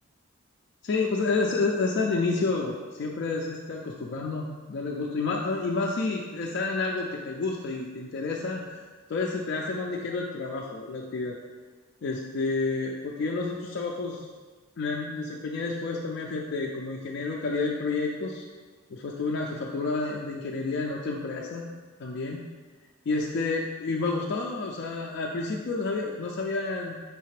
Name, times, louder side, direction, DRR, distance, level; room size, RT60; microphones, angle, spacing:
voice 1, 0.8-11.4 12.0-14.2 14.8-18.5 18.9-21.7 22.0-22.4 23.1-27.0, left 3 dB, 55° left, -1 dB, 0.4 m, -30 dB
4.7 x 3.2 x 3.2 m, 1.4 s
head